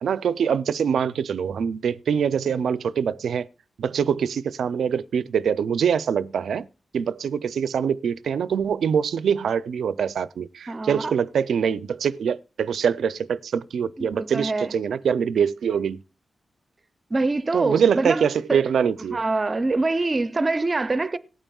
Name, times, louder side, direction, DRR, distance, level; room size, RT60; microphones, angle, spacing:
voice 1, 0.0-3.5 3.8-6.7 6.9-16.0 17.5-19.2, right 7 dB, 90° right, 0.4 m, -24 dB
voice 2, 10.7-11.1 14.0-14.7 17.1-18.6 19.1-21.2, right 3 dB, 25° right, 0.5 m, -25 dB
18.5 x 8.9 x 2.3 m
wide cardioid pair, 160°, 0 cm